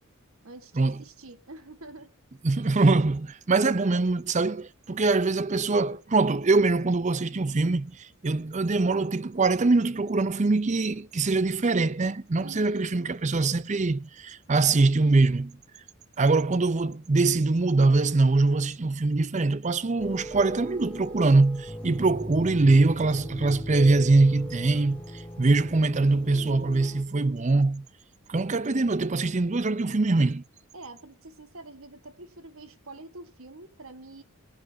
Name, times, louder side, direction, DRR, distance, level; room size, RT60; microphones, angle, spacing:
voice 1, 0.4-2.1 12.4-12.9 30.7-34.2, right 2 dB, 70° right, 1.6 m, -46 dB
voice 2, 2.4-15.6 16.2-25.0 25.4-27.9 28.3-30.4, right 3 dB, 35° right, 0.6 m, -23 dB
sound 1, 20.0-27.0, equal, 5° left, 2.4 m, -38 dB
18.5 x 10.0 x 2.7 m
head